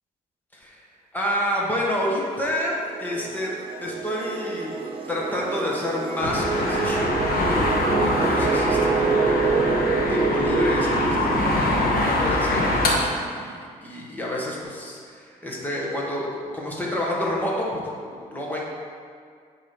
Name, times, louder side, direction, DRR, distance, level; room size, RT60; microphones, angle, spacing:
voice 1, 1.1-3.5 3.8-4.8 5.1-7.1 8.0-16.3 16.5-17.7 18.0-18.7, left 1 dB, 10° left, -4 dB, 1.3 m, -29 dB
sound 1, 2.0-12.5, right 4 dB, 35° right, 0.5 m, -27 dB
sound 2, 6.2-13.0, left 2 dB, 70° left, 1.1 m, -24 dB
8.5 x 3.1 x 5.6 m, 2.1 s
cardioid pair, 140°, 16 cm